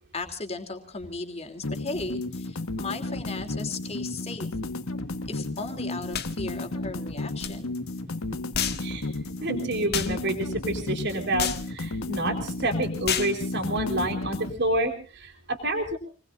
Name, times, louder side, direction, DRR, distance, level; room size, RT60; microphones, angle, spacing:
voice 1, 0.1-4.5 5.2-7.7, left 3 dB, 30° left, 6 dB, 2.9 m, -36 dB
sound 1, 1.6-14.6, left 2 dB, 85° left, 1.4 m, -33 dB
sound 2, 6.1-6.3 7.4-7.5 8.5-8.8 9.9-10.1 11.4-11.6 13.0-13.3, left 8 dB, 50° left, 1.8 m, -28 dB
voice 2, 9.4-16.0, right 1 dB, 55° right, 2 dB, 4.0 m, -28 dB
28.5 x 20.5 x 2.5 m, 0.38 s
head